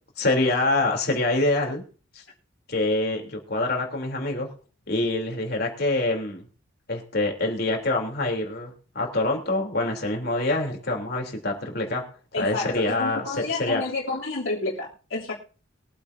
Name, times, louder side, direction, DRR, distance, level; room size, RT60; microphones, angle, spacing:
voice 1, 0.2-1.8 2.1-2.2 2.7-4.5 4.9-6.4 6.9-12.0 12.4-13.3 13.6-13.8, left 2 dB, 50° left, 3.4 m, -25 dB
voice 2, 12.3-15.3, left 3 dB, 85° left, 3.1 m, -30 dB
22.5 x 8.7 x 2.7 m
head